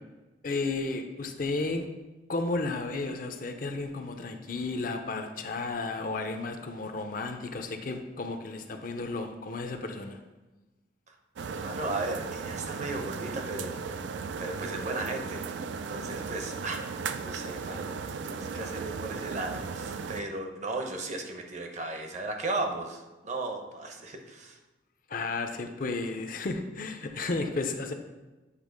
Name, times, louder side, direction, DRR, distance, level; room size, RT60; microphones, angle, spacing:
voice 1, 0.4-1.9 2.3-10.2 25.1-27.9, left 3 dB, 50° left, 6 dB, 0.6 m, -33 dB
sound 1, 11.4-20.2, right 5 dB, 85° right, 0.4 m, -36 dB
voice 2, 11.5-13.8 14.4-24.6, right 2 dB, 40° right, 3 dB, 0.8 m, -36 dB
8.2 x 2.9 x 5.1 m, 1.1 s
head